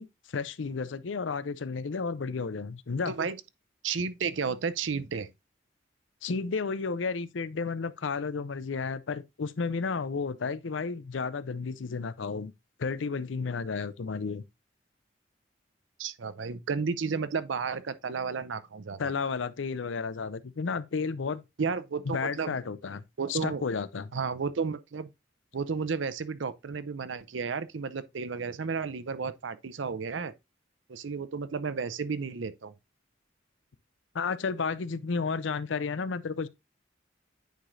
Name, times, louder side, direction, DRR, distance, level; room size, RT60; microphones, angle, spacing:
voice 1, 0.0-3.1 6.2-12.5 12.8-14.4 19.0-21.4 22.1-23.0 23.3-24.1 34.1-36.5, left 5 dB, 90° left, 0.6 m, -32 dB
voice 2, 3.1-3.4 3.8-5.3 16.0-19.1 21.6-22.6 23.2-23.6 24.1-25.1 25.5-30.3 30.9-32.7, right 5 dB, 80° right, 0.6 m, -32 dB
9.1 x 4.9 x 2.5 m
head